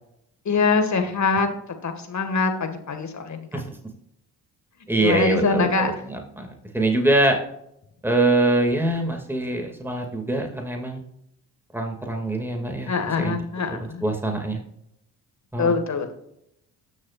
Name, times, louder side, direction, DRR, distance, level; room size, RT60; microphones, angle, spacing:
voice 1, 0.5-1.6 1.8-3.5 5.0-5.9 12.9-14.0 15.6-16.1, left 4 dB, 40° left, 6 dB, 1.9 m, -23 dB
voice 2, 4.9-7.4 8.0-11.0 11.7-12.9 13.2-13.4 13.7-14.6 15.5-15.8, right 2 dB, 5° right, 3 dB, 2.3 m, -24 dB
17.5 x 6.4 x 2.5 m, 0.76 s
hypercardioid pair, 55°, 44 cm